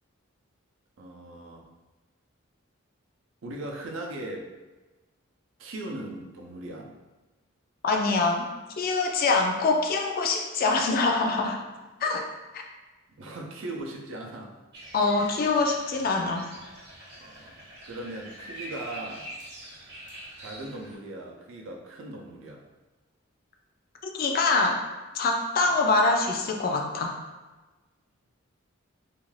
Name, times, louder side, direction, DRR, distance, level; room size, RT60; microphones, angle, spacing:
voice 1, 1.0-1.7 3.4-4.5 5.6-6.9 13.2-14.5 17.2-19.3 20.4-22.6 25.6-25.7, right 1 dB, 70° right, 0 dB, 0.5 m, -39 dB
voice 2, 7.8-8.5 8.8-11.6 12.0-12.2 12.5-12.6 14.9-16.5 24.0-24.8 25.1-27.2, left 3 dB, 45° left, 2 dB, 0.3 m, -24 dB
sound 1, 14.7-21.0, right 1 dB, 50° right, 0.9 m, -44 dB
2.4 x 2.3 x 3.1 m, 1.2 s
head